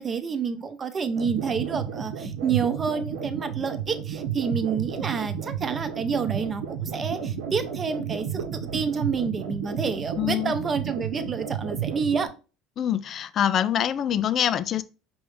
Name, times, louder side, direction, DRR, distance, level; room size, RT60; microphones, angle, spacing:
voice 1, 0.0-12.3, right 5 dB, 30° right, 0.7 m, -29 dB
sound 1, 1.1-12.3, right 8 dB, 90° right, 1.0 m, -32 dB
voice 2, 10.2-10.5 12.8-14.8, left 10 dB, 45° left, 0.4 m, -25 dB
5.1 x 3.1 x 3.2 m
supercardioid pair, 100°, 0 cm